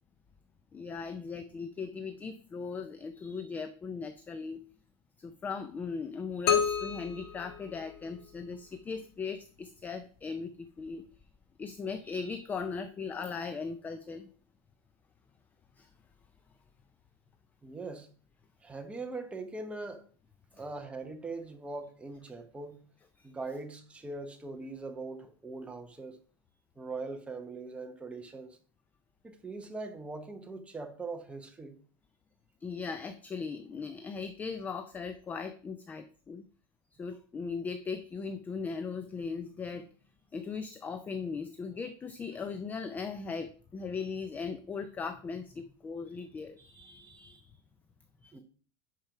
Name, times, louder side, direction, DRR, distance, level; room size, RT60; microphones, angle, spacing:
voice 1, 0.7-4.6 5.2-11.0 11.6-14.3 15.8-15.9 23.2-23.3 32.6-36.5 37.0-39.9 40.3-47.6 48.2-48.4, left 5 dB, 10° left, 0.4 m, -38 dB
sound 1, 6.5-8.4, left 8 dB, 65° left, 1.5 m, -30 dB
voice 2, 17.6-18.1 18.6-20.0 20.5-22.8 23.2-26.2 26.8-28.6 29.2-31.8 48.3-48.4, right 3 dB, 10° right, 1.0 m, -41 dB
10.5 x 4.6 x 5.8 m
supercardioid pair, 170°, 14 cm